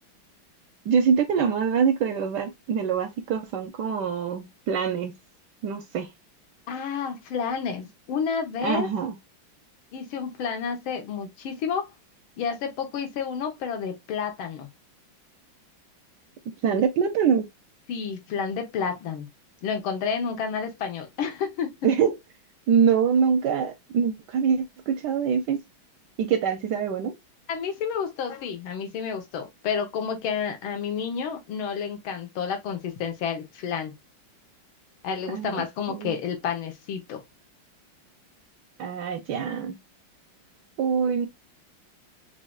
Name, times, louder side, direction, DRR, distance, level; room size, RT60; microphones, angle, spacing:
voice 1, 0.9-5.1 5.6-6.1 8.6-9.1 16.6-17.5 21.8-22.1 22.7-25.6 26.2-27.1 35.3-36.2 38.8-39.7 40.8-41.3, right 7 dB, 75° right, 1.0 m, -24 dB
voice 2, 6.7-8.9 9.9-11.9 12.4-14.7 17.9-19.3 19.6-21.8 27.5-33.9 35.0-37.2, left 6 dB, 80° left, 1.7 m, -30 dB
5.5 x 2.5 x 2.3 m
omnidirectional pair, 2.2 m